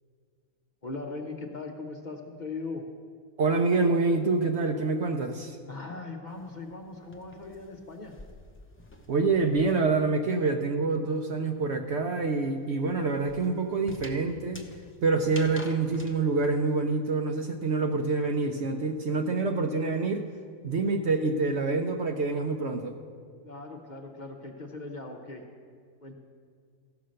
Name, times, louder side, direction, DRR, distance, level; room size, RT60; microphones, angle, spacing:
voice 1, 0.8-2.8 5.6-8.2 23.4-25.4 26.0-26.1, left 3 dB, 40° left, 1 dB, 0.9 m, -39 dB
voice 2, 3.4-5.6 9.1-14.6 15.0-20.3 20.6-23.0, right 3 dB, 60° right, 5 dB, 0.8 m, -26 dB
sound 1, 6.3-10.0 10.3-16.2, left 1 dB, 15° left, 0.5 m, -49 dB
15.5 x 5.5 x 6.4 m, 2.2 s
omnidirectional pair, 1.5 m